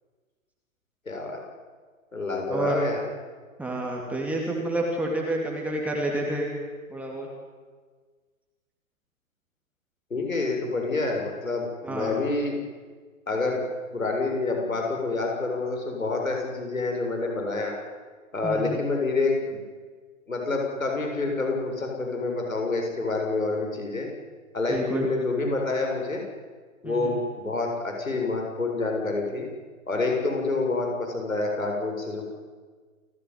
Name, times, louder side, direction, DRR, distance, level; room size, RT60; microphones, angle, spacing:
voice 1, 1.1-1.4 2.1-3.0 10.1-12.6 13.3-13.6 13.9-17.8 18.3-19.6 20.3-24.1 24.5-26.2 26.8-29.5 29.9-32.3, left 3 dB, 75° left, 1 dB, 7.3 m, -27 dB
voice 2, 3.6-6.5 6.9-7.3 11.8-12.2 18.4-18.8 24.7-25.1 26.8-27.1, right 1 dB, 5° right, -2 dB, 2.8 m, -29 dB
28.5 x 16.0 x 9.6 m, 1.5 s
figure-of-eight pair, 125°, 41 cm